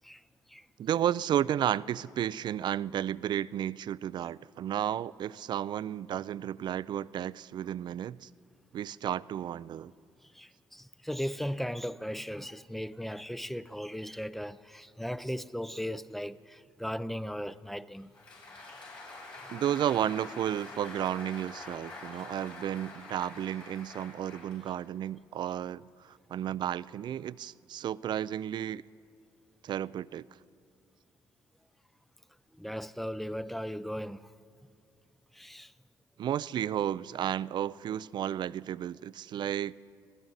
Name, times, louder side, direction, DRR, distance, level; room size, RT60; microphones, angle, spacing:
voice 1, 0.8-8.3 8.7-9.9 19.5-28.8 29.6-30.3 36.2-39.7, right 10 dB, 55° right, 0.3 m, -32 dB
voice 2, 10.2-18.1 32.5-34.3 35.3-35.7, equal, ahead, 0.5 m, -37 dB
Applause, 18.0-25.1, left 2 dB, 70° left, 5.3 m, -46 dB
22.5 x 15.5 x 4.0 m
supercardioid pair, 60°, 9 cm